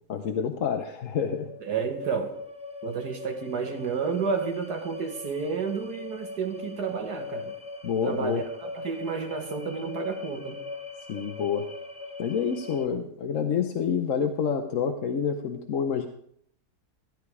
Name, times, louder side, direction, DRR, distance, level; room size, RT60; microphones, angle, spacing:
voice 1, 0.1-1.5 7.8-8.4 11.1-11.7 12.2-16.1, left 7 dB, 60° left, 1.1 m, -28 dB
sound 1, 1.3-12.9, left 3 dB, 5° right, 0.5 m, -41 dB
voice 2, 1.7-2.3 2.8-7.5 8.0-8.4 8.8-10.6, right 5 dB, 85° right, 2.1 m, -30 dB
15.0 x 10.5 x 4.8 m
omnidirectional pair, 1.7 m